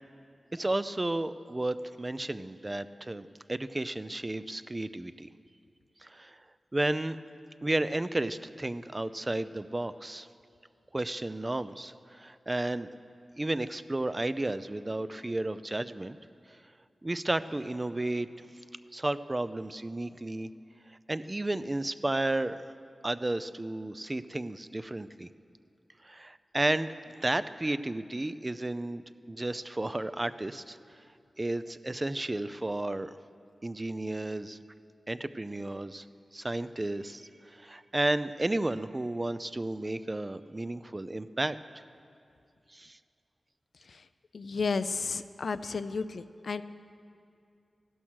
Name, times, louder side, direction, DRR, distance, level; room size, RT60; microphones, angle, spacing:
voice 1, 0.5-5.3 6.0-6.4 6.7-7.2 7.6-10.3 10.9-12.9 13.4-16.2 17.0-18.3 18.9-20.5 20.9-22.7 23.0-25.3 26.0-29.0 29.3-30.8 31.4-33.2 33.6-34.6 35.1-36.0 36.3-41.6 42.7-43.0, right 2 dB, 30° right, 13 dB, 0.5 m, -32 dB
voice 2, 44.3-46.6, left 4 dB, 80° left, 13 dB, 0.4 m, -32 dB
15.0 x 12.0 x 6.4 m, 2.5 s
cardioid pair, 55°, 0 cm